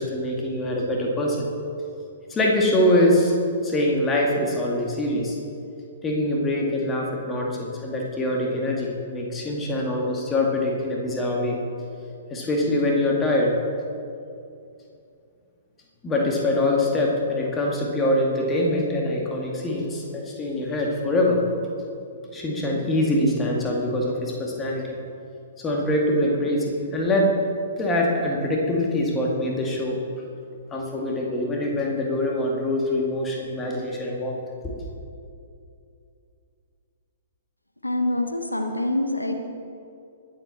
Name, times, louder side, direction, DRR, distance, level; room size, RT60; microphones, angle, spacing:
voice 1, 0.0-1.5 2.3-3.3 3.6-5.4 6.0-11.6 12.3-13.5 16.0-21.4 22.3-24.8 25.6-27.3 27.8-30.0 30.7-34.4, left 1 dB, 15° left, -1 dB, 2.1 m, -24 dB
voice 2, 37.8-39.3, left 1 dB, 85° left, 4 dB, 1.1 m, -25 dB
20.5 x 8.0 x 4.3 m, 2.6 s
figure-of-eight pair, 115°, 0 cm